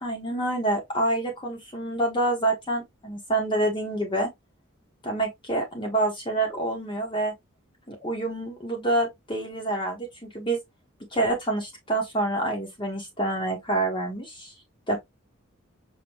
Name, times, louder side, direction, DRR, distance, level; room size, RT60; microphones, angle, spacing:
voice 1, 0.0-4.3 5.0-7.3 7.9-10.6 11.1-14.5 14.9-15.0, right 2 dB, 20° left, 1.2 m, -27 dB
5.4 x 2.6 x 3.0 m
head